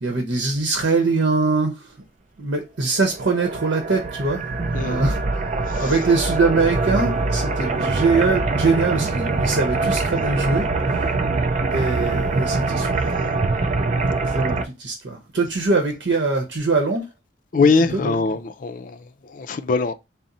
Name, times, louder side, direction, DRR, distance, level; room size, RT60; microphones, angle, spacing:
voice 1, 0.0-1.8 2.4-4.4 4.7-5.2 5.8-10.7 11.7-13.1 14.3-17.0 17.6-18.1, right 3 dB, 80° right, 0.8 m, -22 dB
sound 1, 3.1-14.6, right 3 dB, 40° right, 0.4 m, -23 dB
voice 2, 17.5-19.0 19.3-19.9, left 4 dB, 45° left, 0.4 m, -21 dB
4.1 x 2.1 x 3.8 m
head